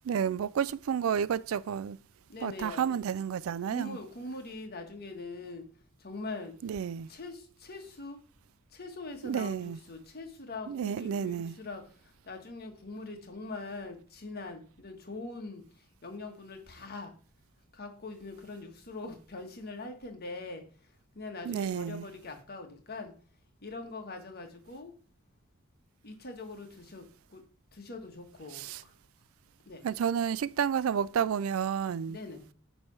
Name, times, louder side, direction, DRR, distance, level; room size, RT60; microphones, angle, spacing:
voice 1, 0.0-2.0 2.4-4.0 6.6-7.1 9.2-9.8 10.7-11.5 21.5-22.1 28.5-28.8 29.8-32.2, right 7 dB, 85° right, 0.4 m, -31 dB
voice 2, 2.3-3.0 3.7-5.6 6.0-6.5 7.1-8.2 8.7-11.8 12.2-15.6 16.0-17.1 17.7-20.6 21.1-23.1 23.6-24.9 26.0-27.4 27.7-28.9 29.6-29.8 32.1-32.5, left 3 dB, 50° left, 1.5 m, -42 dB
9.7 x 3.4 x 5.9 m
head